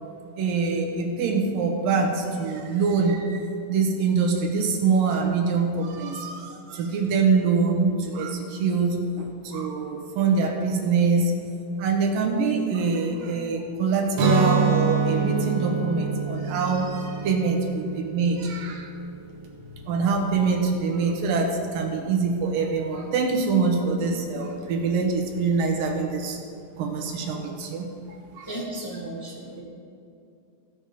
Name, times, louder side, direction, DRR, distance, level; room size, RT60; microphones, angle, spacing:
voice 1, 0.4-11.3 11.8-18.9 19.9-27.9 28.3-28.5, right 4 dB, 90° right, 1 dB, 3.0 m, -24 dB
Guitar, 14.1-20.0, right 5 dB, 65° right, 2.3 m, -26 dB
voice 2, 28.5-29.6, right 1 dB, 10° left, -8 dB, 2.2 m, -35 dB
15.0 x 7.4 x 4.9 m, 2.5 s
omnidirectional pair, 3.9 m